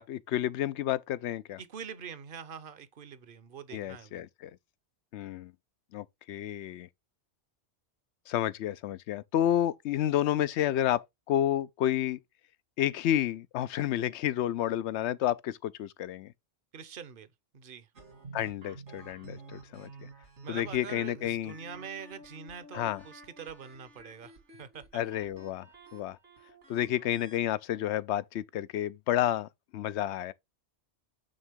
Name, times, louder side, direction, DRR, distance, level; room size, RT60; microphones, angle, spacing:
voice 1, 0.0-1.6 3.7-4.5 5.1-5.5 5.9-6.9 8.3-12.2 12.8-16.3 18.3-19.9 20.5-21.5 22.7-23.0 24.9-25.7 25.9-26.2 26.7-30.3, left 12 dB, 75° left, 0.8 m, -30 dB
voice 2, 1.6-4.2 16.7-17.9 20.4-25.0, right 7 dB, 50° right, 1.0 m, -45 dB
sound 1, 18.0-27.4, right 3 dB, 75° right, 2.3 m, -51 dB
8.8 x 3.7 x 3.5 m
omnidirectional pair, 1.2 m